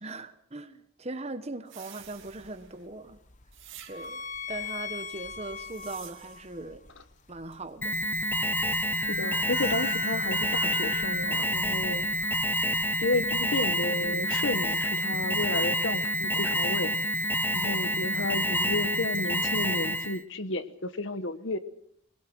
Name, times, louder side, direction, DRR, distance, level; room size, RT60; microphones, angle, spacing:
voice 1, 0.0-3.2 3.9-4.2 4.5-6.8 7.3-8.0, right 2 dB, 30° right, 10 dB, 1.2 m, -39 dB
sound 1, 1.7-2.9 3.5-4.4 5.4-6.6, right 11 dB, 60° right, 2.7 m, -50 dB
sound 2, 2.0-14.2, left 6 dB, 35° left, 1.1 m, -42 dB
Alarm, 7.8-20.2, equal, 10° left, 0.9 m, -28 dB
voice 2, 8.9-12.1 13.0-17.0 17.5-21.6, left 2 dB, 55° left, 12 dB, 1.2 m, -32 dB
23.0 x 21.0 x 6.2 m, 0.68 s
head